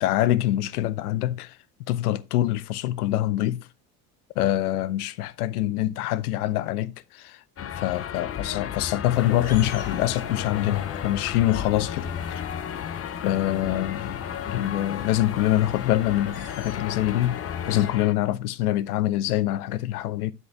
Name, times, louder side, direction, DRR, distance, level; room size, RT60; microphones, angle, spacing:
voice 1, 0.0-1.6 1.9-3.7 4.4-12.4 13.2-20.3, left 14 dB, 80° left, 0.6 m, -25 dB
sound 1, 7.6-18.1, left 9 dB, 30° left, 0.7 m, -34 dB
sound 2, 9.1-17.9, left 7 dB, 55° left, 2.1 m, -37 dB
7.8 x 7.2 x 3.4 m
hypercardioid pair, 65°, 45 cm